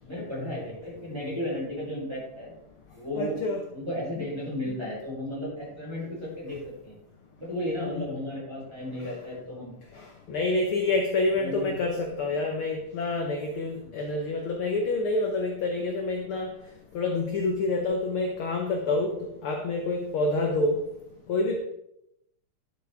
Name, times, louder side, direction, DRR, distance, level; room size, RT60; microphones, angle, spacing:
voice 1, 0.0-2.5 2.9-3.4 3.7-7.0 7.4-9.7 11.4-11.7 13.8-13.9, left 1 dB, 10° right, -6 dB, 4.4 m, -34 dB
voice 2, 3.1-3.6 4.2-4.3 4.7-4.8 7.8-8.0 9.9-16.5 16.9-19.1 19.4-20.8 21.3-21.6, left 2 dB, 60° left, 2 dB, 1.4 m, -27 dB
11.5 x 7.8 x 3.6 m, 0.79 s
omnidirectional pair, 3.6 m